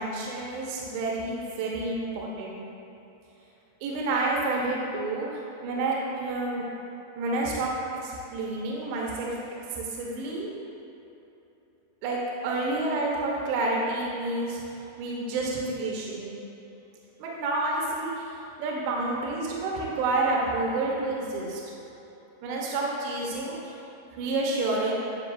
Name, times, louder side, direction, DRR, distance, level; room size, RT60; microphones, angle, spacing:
voice 1, 0.0-2.6 3.8-6.6 7.2-9.4 9.7-10.5 12.0-14.6 15.0-16.4 17.2-18.3 18.6-21.6 22.4-23.7 24.2-24.9, right 2 dB, 80° right, -3 dB, 2.9 m, -29 dB
9.9 x 5.6 x 2.4 m, 3.0 s
omnidirectional pair, 5.1 m